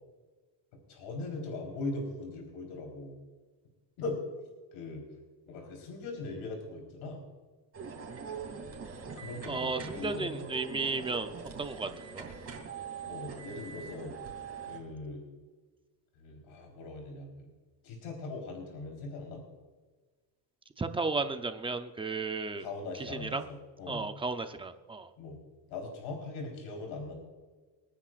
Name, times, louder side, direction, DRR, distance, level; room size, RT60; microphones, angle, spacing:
voice 1, 0.9-3.1 4.0-4.2 4.7-5.0 5.5-7.2 9.2-10.5 13.0-14.1 14.7-15.2 16.1-17.5 17.8-19.4 22.6-24.1 25.2-25.4 25.7-27.1, left 3 dB, 90° left, 0 dB, 4.1 m, -40 dB
sound 1, 7.7-14.8, right 6 dB, 30° right, 2.9 m, -43 dB
voice 2, 9.5-11.3 11.6-12.2 20.8-22.7 23.0-23.4 23.9-25.1, right 3 dB, 10° right, 8 dB, 0.6 m, -34 dB
28.0 x 9.9 x 2.5 m, 1.3 s
cardioid pair, 160°, 46 cm